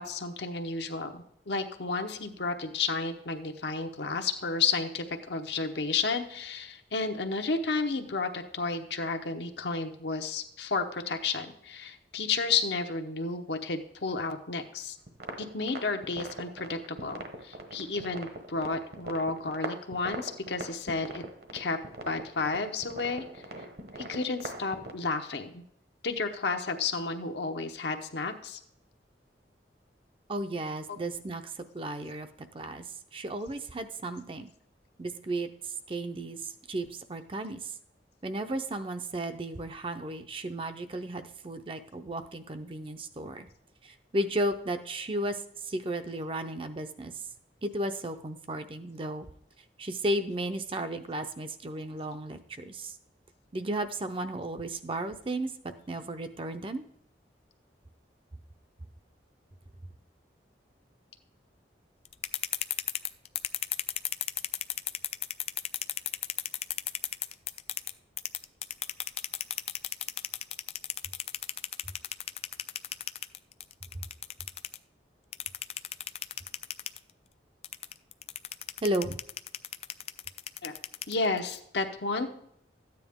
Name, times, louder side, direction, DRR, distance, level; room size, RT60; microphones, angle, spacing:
voice 1, 0.0-15.0 15.4-21.2 21.5-21.8 22.0-23.4 24.1-25.6 26.0-28.6 80.6-80.7 81.1-82.3, left 4 dB, 70° left, 5 dB, 1.0 m, -32 dB
sound 1, 15.1-24.9, right 2 dB, 60° right, 1.2 m, -42 dB
voice 2, 30.3-32.3 32.5-34.5 35.0-37.8 38.2-43.5 43.8-47.2 47.6-49.3 49.8-53.0 53.5-56.8 78.8-79.2, right 1 dB, 30° right, 8 dB, 0.6 m, -34 dB
sound 2, 62.0-67.9 68.2-74.8 75.3-77.0 77.6-81.4, left 11 dB, 35° left, 0.3 m, -33 dB
13.0 x 9.1 x 3.6 m, 0.72 s
head